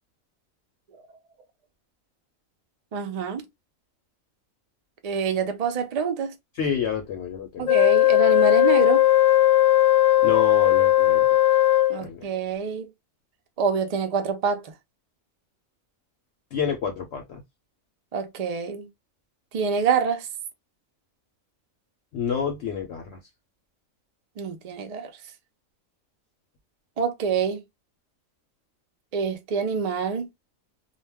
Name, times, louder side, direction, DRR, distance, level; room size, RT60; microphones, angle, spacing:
voice 1, 2.9-3.4 5.0-6.3 7.6-9.1 11.9-12.9 13.6-14.7 18.1-18.9 19.5-20.3 24.4-25.1 27.0-27.6 29.1-30.3, right 6 dB, 70° right, 0.3 m, -26 dB
voice 2, 6.6-7.7 10.2-11.3 12.0-12.2 16.5-17.4 22.1-23.2, left 7 dB, 65° left, 0.8 m, -29 dB
Wind instrument woodwind instrument, 7.7-12.0, left 15 dB, 85° left, 1.1 m, -18 dB
2.3 x 2.1 x 3.3 m
omnidirectional pair, 1.4 m